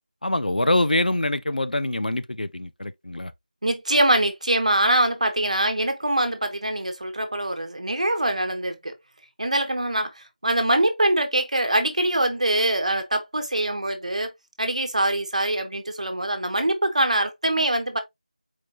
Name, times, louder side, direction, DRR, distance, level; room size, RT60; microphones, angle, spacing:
voice 1, 0.2-3.3, left 1 dB, 85° left, 0.6 m, -24 dB
voice 2, 3.6-8.9 9.4-14.3 14.6-18.0, right 1 dB, 55° right, 1.2 m, -23 dB
4.6 x 4.0 x 2.6 m
figure-of-eight pair, 175°, 5 cm